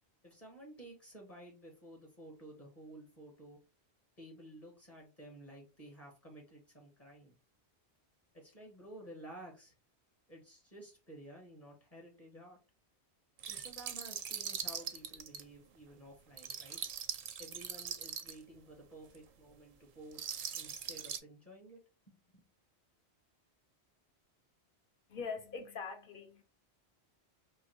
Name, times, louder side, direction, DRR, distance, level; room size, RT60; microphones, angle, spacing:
voice 1, 0.2-3.6 4.2-7.4 8.3-9.7 10.3-12.6 13.5-16.8 17.4-20.2 20.5-21.8 22.1-22.4, right 1 dB, 35° left, 1.3 m, -53 dB
sound 1, 13.4-15.4 16.4-18.4 19.1-19.2 20.1-21.2, right 8 dB, 60° right, 0.6 m, -41 dB
voice 2, 25.1-26.4, left 5 dB, 55° left, 0.9 m, -42 dB
3.9 x 3.0 x 3.0 m
omnidirectional pair, 1.1 m